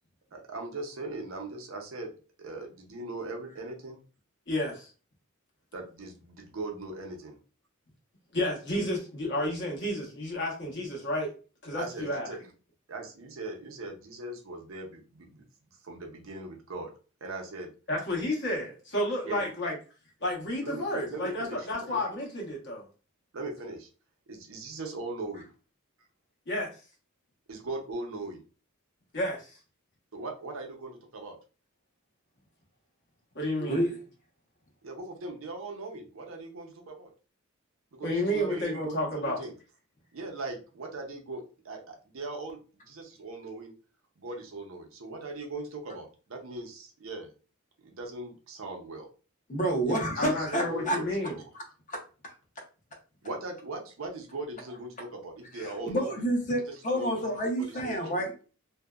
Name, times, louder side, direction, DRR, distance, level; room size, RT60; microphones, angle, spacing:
voice 1, 0.3-2.1 2.4-4.0 5.7-7.4 11.8-12.4 12.9-15.5 15.8-16.9 17.2-17.7 19.2-19.5 20.6-22.0 23.3-23.9 24.3-25.5 27.5-28.4 30.1-31.4 34.8-37.1 37.9-39.5 40.1-42.6 42.9-43.7 44.2-47.3 47.8-49.1 49.9-51.4 53.2-56.2 56.7-58.2, right 2 dB, 70° right, 2 dB, 0.6 m, -39 dB
voice 2, 4.5-4.9 8.3-11.3 11.6-12.3 17.9-19.7 20.2-22.9 26.5-26.8 29.1-29.6 33.3-33.8 38.0-39.4 50.2-51.4, left 1 dB, 55° left, -2 dB, 1.0 m, -31 dB
voice 3, 33.5-34.0 49.5-51.0 51.9-52.0 52.6-52.7 55.5-58.3, right 1 dB, 35° left, 1 dB, 0.7 m, -29 dB
2.6 x 2.1 x 2.3 m, 0.35 s
head